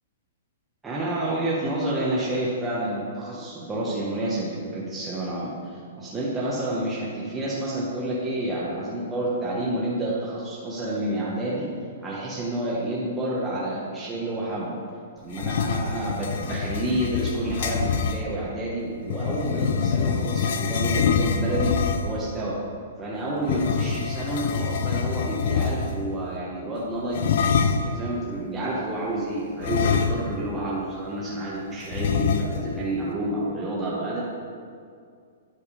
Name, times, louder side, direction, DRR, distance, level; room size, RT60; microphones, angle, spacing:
voice 1, 0.8-11.7 12.0-14.8 15.2-21.7 22.0-22.6 23.0-34.2, right 1 dB, 10° right, -7 dB, 1.0 m, -29 dB
sound 1, 15.3-18.2 19.1-22.2 23.4-26.0 27.1-28.0 29.6-30.5 30.8-30.9 31.9-32.8, left 6 dB, 60° left, 0.5 m, -25 dB
9.8 x 3.5 x 4.9 m, 2.2 s
hypercardioid pair, 155°, 0 cm